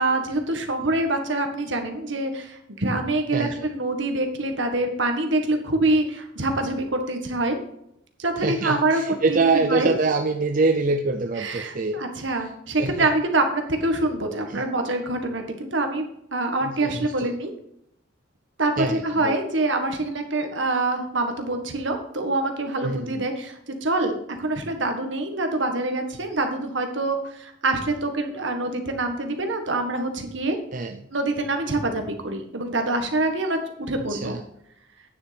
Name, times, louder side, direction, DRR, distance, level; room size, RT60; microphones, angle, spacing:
voice 1, 0.0-7.6 8.2-9.9 11.3-16.0 16.3-17.5 18.6-30.6 31.1-34.4, right 2 dB, 70° right, 5 dB, 1.7 m, -25 dB
voice 2, 8.4-12.0 12.8-13.1 14.5-14.6 16.6-17.3 18.8-19.3 22.8-23.2 30.7-31.0 34.1-34.4, right 3 dB, 45° right, 5 dB, 0.6 m, -24 dB
9.6 x 7.1 x 5.2 m, 0.75 s
head